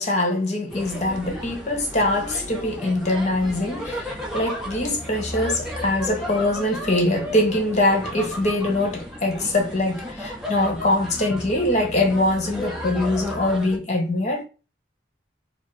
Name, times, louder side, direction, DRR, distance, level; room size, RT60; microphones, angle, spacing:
voice 1, 0.0-14.4, left 1 dB, 40° left, 0.9 m, -23 dB
sound 1, 0.7-13.8, left 1 dB, ahead, 0.8 m, -34 dB
4.6 x 2.0 x 3.2 m
head